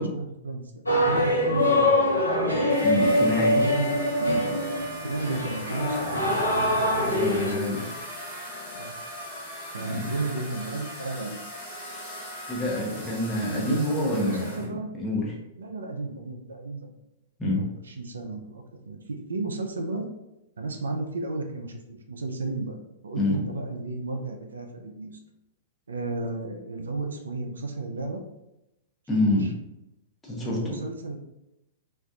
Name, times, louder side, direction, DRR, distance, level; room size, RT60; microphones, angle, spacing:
voice 1, 0.0-2.1 3.4-4.5 5.0-7.9 8.7-8.9 9.7-11.4 13.5-14.9 15.6-16.9 17.4-20.1 20.6-22.8 23.0-25.2 25.9-28.2 29.3-29.5 30.4-31.2, right 3 dB, 75° right, 4 dB, 0.3 m, -33 dB
sound 1, 0.9-7.5, left 1 dB, 85° left, 0.6 m, -24 dB
sound 2, 2.7-14.7, equal, 30° left, 1.3 m, -39 dB
voice 2, 2.8-3.7 7.0-7.8 9.9-10.0 12.5-14.6 15.0-15.3 17.4-17.6 23.2-23.4 29.1-29.5 30.3-30.8, left 1 dB, 10° left, -5 dB, 0.7 m, -27 dB
2.5 x 2.2 x 2.3 m, 0.91 s
figure-of-eight pair, 105°, 0 cm